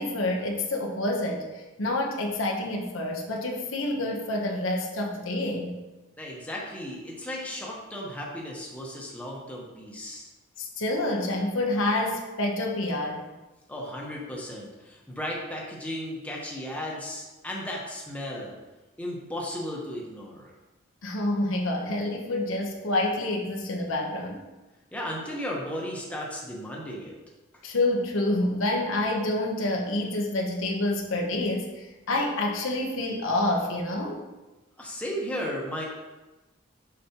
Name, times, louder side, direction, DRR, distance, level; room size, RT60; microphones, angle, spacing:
voice 1, 0.0-5.8 10.6-13.2 21.0-24.4 27.6-34.2, left 1 dB, 90° left, 1 dB, 1.0 m, -28 dB
voice 2, 6.2-10.3 13.7-18.5 19.0-20.5 24.9-27.1 34.8-35.8, equal, 5° left, -3 dB, 1.0 m, -35 dB
6.9 x 5.1 x 2.9 m, 1.1 s
head